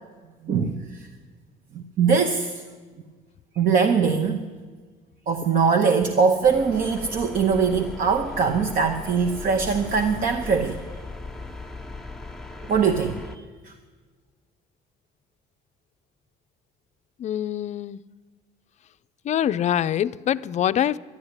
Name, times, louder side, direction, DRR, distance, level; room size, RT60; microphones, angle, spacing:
voice 1, 0.4-1.1 1.7-2.6 3.6-4.5 5.3-10.8 12.7-13.7, right 5 dB, 55° right, 0.9 m, -22 dB
sound 1, 6.4-13.4, left 2 dB, 5° left, 1.0 m, -38 dB
voice 2, 17.2-18.0 19.3-21.0, left 10 dB, 45° left, 0.4 m, -24 dB
11.5 x 11.0 x 9.7 m
cardioid pair, 110°, 17 cm